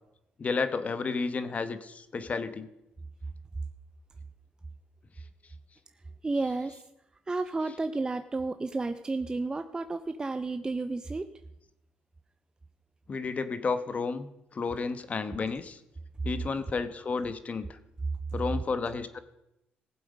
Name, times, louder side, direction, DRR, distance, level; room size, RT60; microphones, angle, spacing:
voice 1, 0.4-2.7 6.4-6.8 7.6-7.8 13.1-15.8 16.2-17.8 18.3-19.2, left 4 dB, 40° left, 12 dB, 1.1 m, -32 dB
voice 2, 6.2-6.8 7.3-11.3, right 3 dB, 20° right, 9 dB, 0.6 m, -32 dB
18.0 x 7.7 x 5.2 m, 0.88 s
cardioid pair, 95°, 4 cm